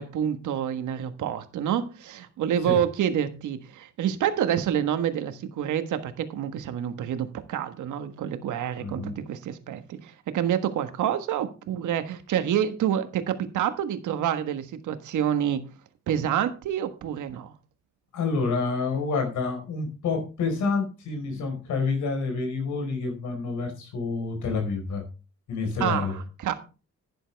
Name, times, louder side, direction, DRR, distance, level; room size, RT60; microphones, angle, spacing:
voice 1, 0.0-15.6 16.1-17.5 25.8-26.5, right 10 dB, 80° right, 9 dB, 1.5 m, -28 dB
voice 2, 8.8-9.1 18.1-25.0 25.5-26.2, left 4 dB, 75° left, 5 dB, 4.4 m, -28 dB
11.0 x 10.0 x 3.4 m, 0.33 s
cardioid pair, 90°, 30 cm